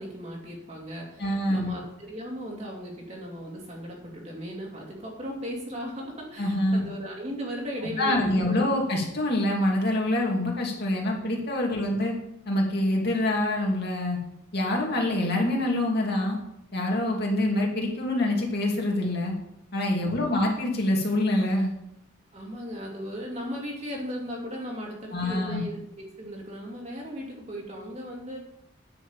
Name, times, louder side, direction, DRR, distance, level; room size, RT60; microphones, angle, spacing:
voice 1, 0.0-8.8 11.7-12.1 20.0-20.3 22.3-28.4, equal, 30° right, -1 dB, 2.6 m, -37 dB
voice 2, 1.2-1.7 6.4-6.8 8.0-12.1 12.5-14.2 14.5-16.4 16.7-19.4 19.7-21.7 25.1-25.6, left 1 dB, 50° left, -1 dB, 2.6 m, -25 dB
9.7 x 6.3 x 7.2 m, 0.76 s
head